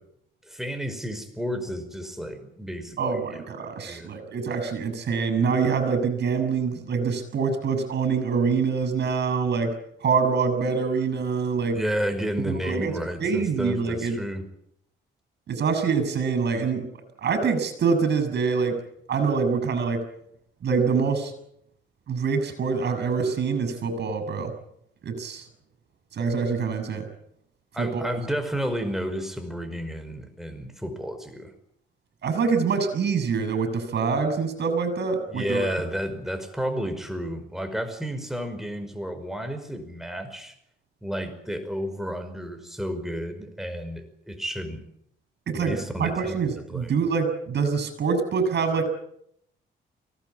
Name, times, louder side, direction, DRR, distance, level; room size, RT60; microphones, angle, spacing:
voice 1, 0.5-3.2 3.9-4.1 11.7-14.4 27.7-31.5 35.3-40.5 41.0-44.8 45.5-46.4 46.7-46.9, equal, ahead, 6 dB, 5.4 m, -31 dB
voice 2, 3.0-9.7 10.0-11.8 12.5-12.9 13.2-14.2 15.5-16.9 17.2-18.8 19.1-20.0 20.6-21.3 22.1-24.5 25.0-25.4 26.1-27.1 27.8-28.0 32.2-35.7 45.5-48.9, right 5 dB, 60° right, 10 dB, 7.7 m, -25 dB
24.0 x 18.5 x 8.8 m, 0.74 s
cardioid pair, 90°, 20 cm